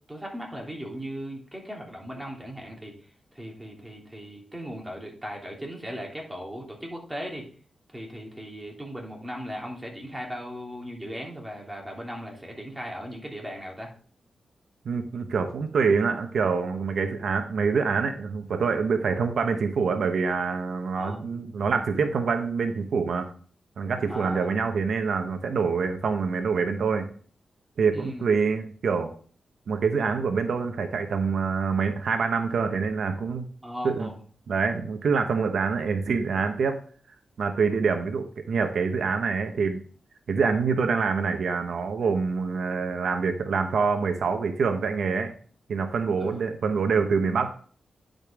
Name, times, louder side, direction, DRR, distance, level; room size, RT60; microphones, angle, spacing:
voice 1, 0.0-2.9 3.3-7.5 7.9-13.9 21.0-21.5 24.1-24.5 27.9-28.3 33.6-34.2 46.2-46.4, equal, 10° right, -1 dB, 3.0 m, -38 dB
voice 2, 14.8-23.3 23.8-27.1 27.8-29.1 29.7-33.5 33.8-34.1 34.5-36.8 37.4-39.8 40.3-45.3 45.7-47.5, right 5 dB, 75° right, 7 dB, 1.0 m, -26 dB
10.5 x 5.2 x 3.7 m, 0.43 s
cardioid pair, 70°, 0 cm